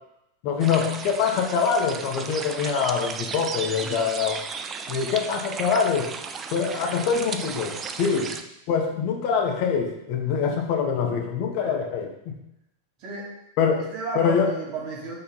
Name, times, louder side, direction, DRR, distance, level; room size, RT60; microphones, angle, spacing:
voice 1, 0.4-4.4 4.9-6.2 6.5-8.3 8.7-12.4 13.6-13.9 14.1-14.5, left 6 dB, 45° left, 3 dB, 1.3 m, -24 dB
sound 1, 0.6-8.4, right 5 dB, 25° right, 0.7 m, -35 dB
voice 2, 13.0-13.3 13.8-15.2, right 2 dB, 40° right, -3 dB, 2.9 m, -34 dB
6.5 x 5.6 x 5.5 m, 0.84 s
figure-of-eight pair, 90°, 0 cm